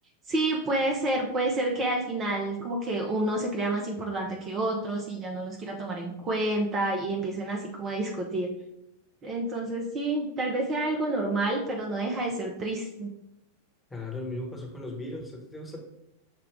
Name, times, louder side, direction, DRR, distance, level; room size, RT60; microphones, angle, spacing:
voice 1, 0.3-8.5 9.2-13.1, right 2 dB, 25° right, 0 dB, 0.6 m, -29 dB
voice 2, 13.9-15.8, left 2 dB, 10° left, 0 dB, 1.1 m, -37 dB
6.6 x 2.3 x 3.6 m, 0.82 s
figure-of-eight pair, 90°, 0 cm